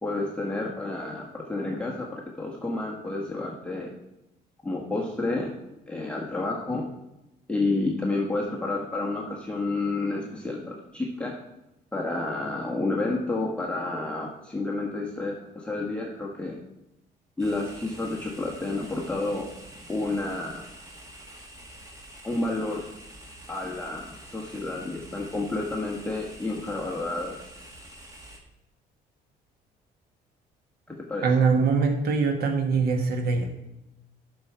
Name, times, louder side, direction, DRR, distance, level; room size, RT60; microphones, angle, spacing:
voice 1, 0.0-3.9 4.6-5.5 5.9-6.9 7.5-11.3 11.9-16.6 17.4-19.5 19.9-20.7 22.2-22.9 23.5-27.4 30.9-31.3, left 2 dB, 5° left, -3 dB, 1.3 m, -30 dB
sound 1, 17.4-28.4, right 1 dB, 20° right, 1.8 m, -47 dB
voice 2, 31.2-33.5, right 4 dB, 70° right, 5 dB, 1.6 m, -23 dB
11.0 x 6.1 x 4.6 m, 0.91 s
cardioid pair, 110°, 17 cm